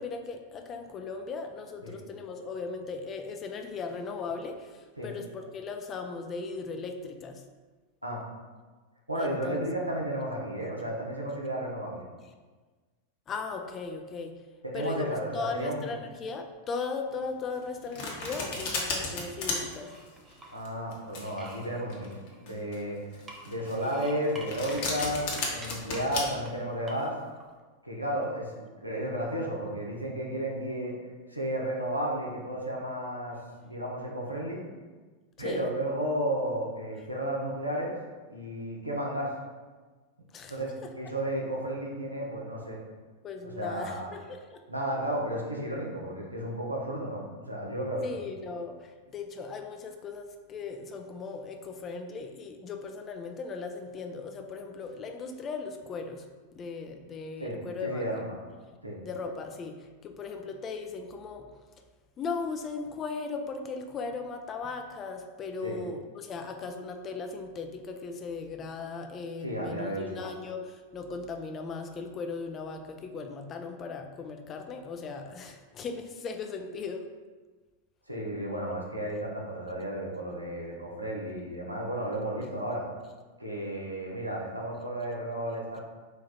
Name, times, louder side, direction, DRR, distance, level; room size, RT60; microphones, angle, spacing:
voice 1, 0.0-7.4 9.2-9.9 13.3-14.4 14.7-19.9 35.4-35.7 40.3-40.9 43.2-44.6 48.0-56.3 56.5-58.0 58.7-58.8 59.0-61.5 62.2-77.1, left 4 dB, 25° left, 5 dB, 0.4 m, -38 dB
voice 2, 9.1-12.0 14.6-15.9 20.5-23.0 23.4-27.1 27.8-30.9 31.3-33.4 33.6-34.6 35.4-37.9 38.3-39.3 40.5-42.8 43.4-44.1 44.7-48.2 57.4-58.3 58.8-59.0 65.6-65.8 69.4-70.2 78.1-82.9 83.4-85.8, right 1 dB, 85° right, -2 dB, 0.8 m, -33 dB
Domestic sounds home sounds, 17.5-26.2, left 3 dB, 50° left, 0.9 m, -34 dB
sound 1, 18.0-18.7 19.1-20.6 21.1-22.7 23.1-25.0 25.3-26.0 26.4-26.5 26.9-27.4, right 2 dB, 20° right, 0.7 m, -48 dB
4.4 x 2.4 x 4.3 m, 1.3 s
figure-of-eight pair, 90°, 0 cm